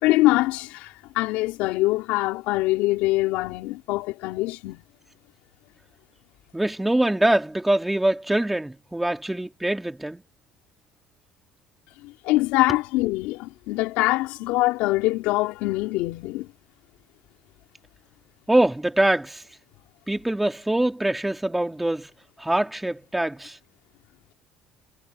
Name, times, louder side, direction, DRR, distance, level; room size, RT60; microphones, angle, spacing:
voice 1, 0.0-4.8 12.0-16.5, left 19 dB, 80° left, 4.0 m, -24 dB
voice 2, 6.5-10.2 18.5-19.4 20.1-22.1 22.4-23.6, right 1 dB, 5° right, 2.9 m, -23 dB
cardioid pair, 150°, 2 cm